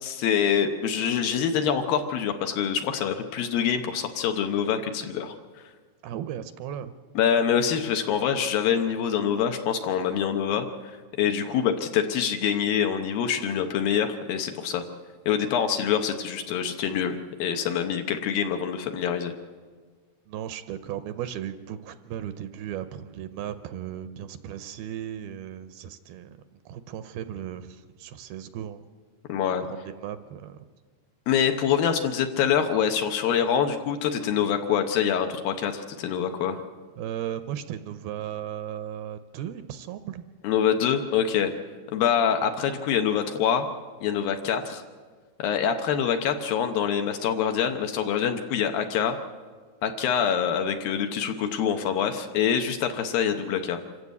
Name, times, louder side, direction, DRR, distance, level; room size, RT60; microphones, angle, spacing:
voice 1, 0.0-5.4 7.2-14.8 15.3-19.3 29.3-29.6 31.3-36.6 40.4-41.5 41.9-43.7 44.0-44.8 45.4-49.2 49.8-53.8, left 8 dB, 70° left, 6 dB, 2.5 m, -25 dB
voice 2, 6.0-6.9 20.3-28.8 29.7-30.6 37.0-40.2, right 10 dB, 75° right, 11 dB, 2.4 m, -36 dB
26.5 x 14.5 x 8.3 m, 1.5 s
omnidirectional pair, 4.8 m